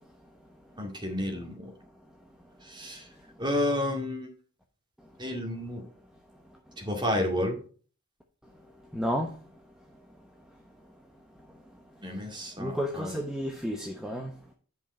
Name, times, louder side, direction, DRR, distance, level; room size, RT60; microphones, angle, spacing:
voice 1, 0.8-1.7 2.6-3.1 3.4-4.3 5.2-5.9 6.8-7.6 12.0-13.2, left 1 dB, 20° right, 3 dB, 2.2 m, -31 dB
voice 2, 8.9-9.3 12.6-14.3, equal, 5° right, 2 dB, 0.9 m, -31 dB
10.0 x 5.6 x 4.3 m, 0.39 s
head